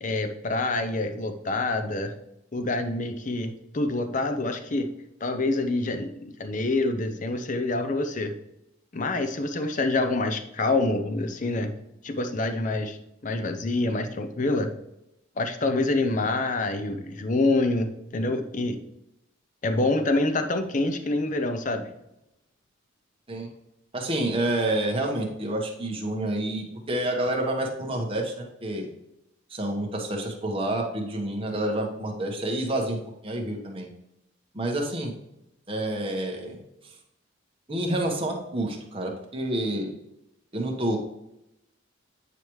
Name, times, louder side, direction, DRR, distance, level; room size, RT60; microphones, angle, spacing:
voice 1, 0.0-2.1 2.5-4.9 5.2-8.3 8.9-11.7 12.0-13.0 13.2-14.7 15.4-18.8 19.6-21.9, left 2 dB, 40° left, 7 dB, 0.6 m, -26 dB
voice 2, 23.9-28.9 29.5-33.0 33.2-33.9 34.5-35.1 35.7-36.6 36.8-36.9 37.7-39.9 40.5-41.0, right 1 dB, 25° right, 1 dB, 1.1 m, -28 dB
8.9 x 4.9 x 3.1 m, 0.87 s
head